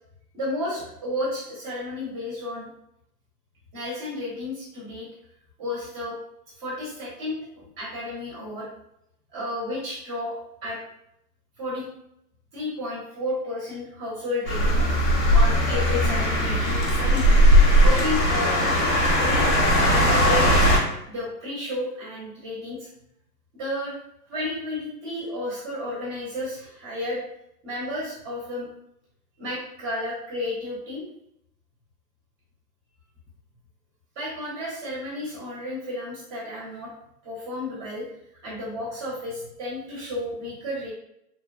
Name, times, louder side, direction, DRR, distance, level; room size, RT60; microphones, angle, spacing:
voice 1, 0.3-2.7 3.7-5.1 5.6-6.1 6.6-8.7 9.3-10.8 11.6-11.9 12.5-14.8 15.3-17.4 17.8-18.6 19.2-19.5 19.9-20.5 21.1-22.9 23.6-23.9 24.3-27.2 27.6-28.7 29.4-31.0 34.1-36.9 37.2-38.0 38.4-40.9, left 1 dB, 25° right, -6 dB, 0.9 m, -32 dB
sound 1, 14.5-20.8, equal, 85° left, 1.3 m, -19 dB
3.0 x 2.2 x 2.3 m, 0.78 s
hypercardioid pair, 135°, 48 cm